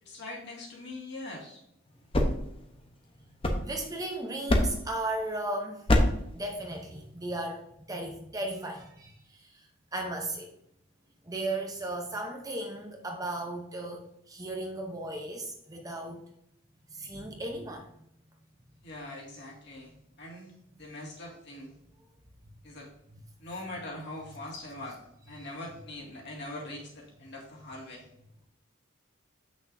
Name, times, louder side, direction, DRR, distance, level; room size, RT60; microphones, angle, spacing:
voice 1, 0.0-1.6 18.8-20.5 20.8-21.7 22.6-22.9 23.4-25.0 25.3-28.0, left 2 dB, 55° left, -3 dB, 2.2 m, -42 dB
sound 1, 1.9-4.1 4.5-5.0 5.9-6.3, left 1 dB, 25° left, 0.8 m, -26 dB
voice 2, 3.6-5.8 6.3-10.5 11.2-14.0 14.3-16.2 16.9-17.9 25.4-25.5, right 2 dB, 15° right, 2 dB, 0.8 m, -36 dB
8.0 x 6.2 x 2.7 m, 0.75 s
head